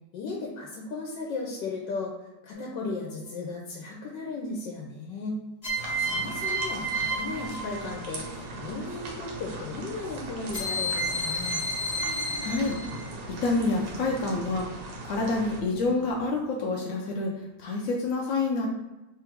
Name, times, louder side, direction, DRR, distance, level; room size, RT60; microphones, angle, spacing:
voice 1, 0.1-2.1 2.4-5.4 6.0-11.6, left 3 dB, 85° left, -2 dB, 1.3 m, -35 dB
sound 1, 2.5-3.1 5.6-8.3 10.5-13.1, right 1 dB, 30° left, 0.8 m, -31 dB
sound 2, 5.8-15.6, right 2 dB, 85° right, 1.4 m, -40 dB
sound 3, 7.4-16.3, right 3 dB, 65° right, 0.8 m, -45 dB
voice 2, 12.4-12.8 13.3-14.7 15.0-18.7, left 3 dB, 70° left, -1 dB, 0.7 m, -28 dB
3.4 x 2.4 x 4.4 m, 1.1 s
omnidirectional pair, 1.9 m